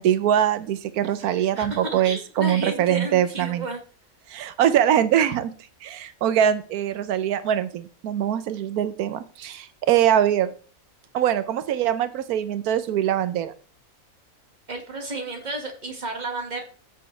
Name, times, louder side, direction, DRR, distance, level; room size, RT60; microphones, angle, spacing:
voice 1, 0.0-3.7 4.3-5.5 5.8-10.5 11.1-13.5, right 10 dB, 90° right, 13 dB, 1.2 m, -23 dB
voice 2, 1.2-3.8 14.7-16.6, right 2 dB, 30° right, 3 dB, 2.0 m, -32 dB
14.0 x 6.5 x 3.3 m, 0.40 s
omnidirectional pair, 1.6 m